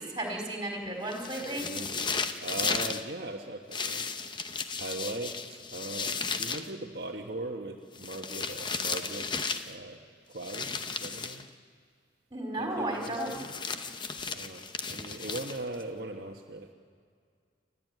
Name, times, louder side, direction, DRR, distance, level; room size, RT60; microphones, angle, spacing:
voice 1, 0.0-1.7 12.3-13.3, right 1 dB, 20° right, 1 dB, 4.5 m, -34 dB
sound 1, 1.1-3.0 3.7-6.7 7.9-9.7 10.4-11.4 13.0-15.8, left 5 dB, 25° left, 0.8 m, -35 dB
voice 2, 1.6-4.1 4.8-9.3 9.6-10.0 10.3-11.5 12.6-13.5 14.3-16.7, right 2 dB, 55° right, 0 dB, 1.3 m, -39 dB
29.5 x 12.5 x 9.3 m, 2.1 s
head